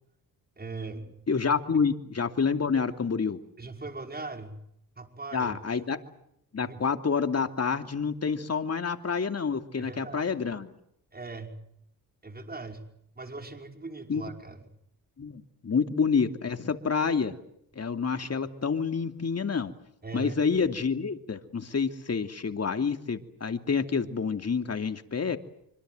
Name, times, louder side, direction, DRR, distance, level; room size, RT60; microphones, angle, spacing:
voice 1, 0.6-1.2 3.6-4.6 5.0-5.5 6.6-6.8 9.8-10.3 11.1-11.6 12.2-12.8 13.2-14.7 20.0-20.4, right 3 dB, 25° right, 5 dB, 5.5 m, -40 dB
voice 2, 1.3-3.4 5.3-6.0 6.5-10.7 14.1-14.2 15.2-17.3 17.8-19.7 20.1-25.4, left 5 dB, 40° left, 7 dB, 2.8 m, -28 dB
26.0 x 25.5 x 8.0 m, 0.74 s
cardioid pair, 70°, 38 cm